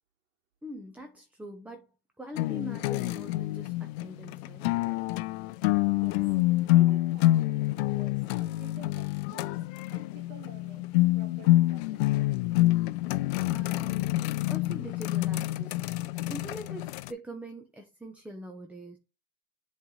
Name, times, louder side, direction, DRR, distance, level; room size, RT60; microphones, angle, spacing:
voice 1, 0.6-1.9 2.2-4.7 13.5-15.9 16.3-19.0, equal, 5° right, 0.7 m, -43 dB
sound 1, 2.4-17.1, left 17 dB, 75° left, 0.5 m, -27 dB
voice 2, 5.9-6.2 6.6-10.9 11.1-12.3, right 6 dB, 60° right, 1.5 m, -52 dB
7.8 x 3.3 x 3.8 m
supercardioid pair, 110°, 32 cm